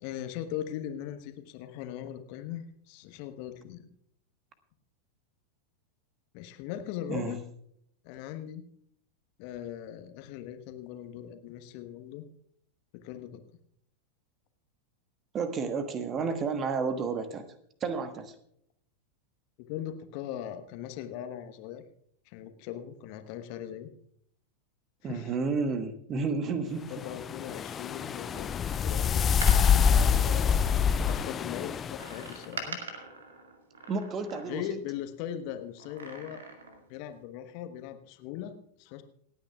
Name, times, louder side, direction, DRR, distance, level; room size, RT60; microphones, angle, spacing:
voice 1, 0.0-3.8 6.3-7.4 8.0-8.6 9.4-12.2 12.9-13.4 19.6-21.8 22.3-23.9 25.0-25.3 26.9-28.6 28.8-29.3 29.8-32.8 34.5-36.4 36.9-39.0, left 11 dB, 45° left, 8 dB, 1.2 m, -39 dB
voice 2, 15.3-17.4 17.8-18.3 25.0-27.0 28.3-28.4 33.9-34.6, right 4 dB, 30° right, 10 dB, 1.3 m, -31 dB
sound 1, 27.0-32.3, left 7 dB, 25° left, 0.4 m, -26 dB
Door, 29.2-31.0 32.0-34.8 35.8-36.9 37.2-37.3, right 3 dB, 65° right, 2.1 m, -43 dB
27.5 x 9.2 x 2.4 m, 0.68 s
figure-of-eight pair, 90°, 0 cm